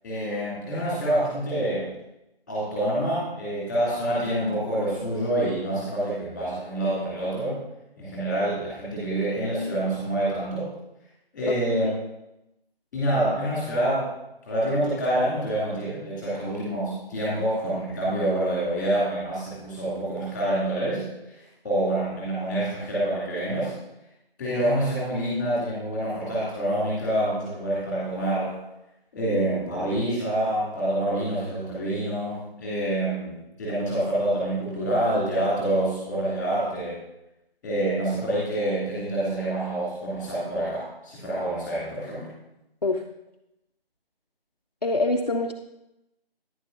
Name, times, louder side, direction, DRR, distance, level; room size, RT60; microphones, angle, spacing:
voice 1, 0.0-1.9 2.5-7.6 8.0-10.7 11.3-11.9 12.9-14.1 14.5-23.7 24.4-28.5 29.1-37.0 37.6-42.3, right 1 dB, 5° left, -8 dB, 2.3 m, -27 dB
voice 2, 11.5-12.0 42.8-43.0 44.8-45.5, left 2 dB, 45° left, 2 dB, 0.5 m, -26 dB
10.0 x 9.9 x 2.6 m, 0.91 s
figure-of-eight pair, 165°, 30 cm